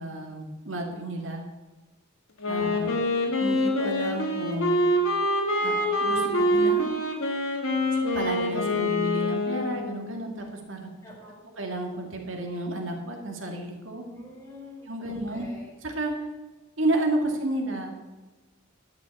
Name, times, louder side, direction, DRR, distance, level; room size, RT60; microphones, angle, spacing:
voice 1, 0.0-1.4 2.5-3.0 3.4-4.8 5.6-6.9 8.1-10.9 11.6-14.0 14.9-15.5 15.8-16.1 16.8-17.9, right 1 dB, 65° right, 2 dB, 2.3 m, -31 dB
Wind instrument woodwind instrument, 2.4-10.0, left 1 dB, 85° left, 2.4 m, -25 dB
voice 2, 2.5-3.0 11.0-11.4 14.1-15.7, equal, 15° left, -3 dB, 4.7 m, -46 dB
11.5 x 6.3 x 8.4 m, 1.2 s
head